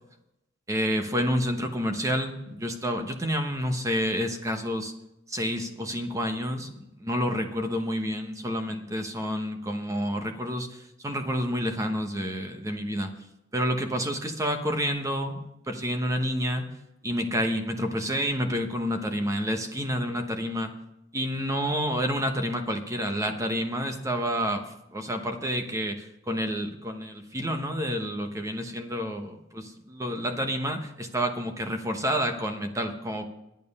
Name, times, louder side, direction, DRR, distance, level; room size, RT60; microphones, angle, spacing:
voice 1, 0.7-4.9 5.3-13.1 13.5-16.6 17.0-20.7 21.1-24.6 24.9-33.2, equal, 15° right, 5 dB, 1.0 m, -29 dB
11.0 x 9.3 x 5.4 m, 0.88 s
head